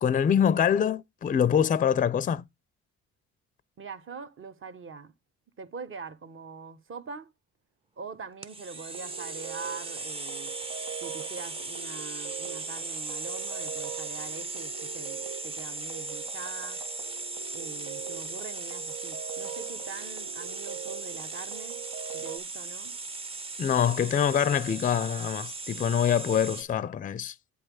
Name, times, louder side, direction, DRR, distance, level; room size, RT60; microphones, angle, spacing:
voice 1, 0.0-2.5 23.6-27.3, left 8 dB, 30° left, 0.4 m, -25 dB
voice 2, 3.8-5.1 5.6-7.3 8.0-10.5 11.0-16.8 17.5-21.8 22.1-22.9, right 4 dB, 45° right, 0.9 m, -43 dB
sound 1, 8.4-26.6, right 3 dB, 20° right, 0.6 m, -38 dB
sound 2, 8.9-22.4, right 9 dB, 75° right, 1.0 m, -43 dB
8.2 x 3.2 x 6.2 m
cardioid pair, 90°, 30 cm